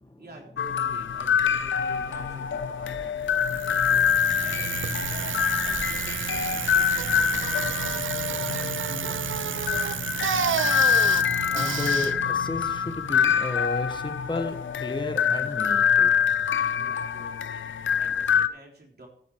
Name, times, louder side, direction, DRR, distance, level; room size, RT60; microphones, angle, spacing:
voice 1, 0.2-9.5 16.8-19.1, right 2 dB, 55° right, 0 dB, 3.5 m, -48 dB
sound 1, 0.6-18.5, left 7 dB, 90° left, 0.6 m, -25 dB
Bird, 1.1-8.1, equal, 5° left, 3.5 m, -48 dB
Bicycle, 3.3-13.4, right 8 dB, 90° right, 0.5 m, -31 dB
voice 2, 11.5-16.1, left 2 dB, 25° left, 7 dB, 1.5 m, -33 dB
14.5 x 7.0 x 4.7 m, 0.65 s
cardioid pair, 50°, 19 cm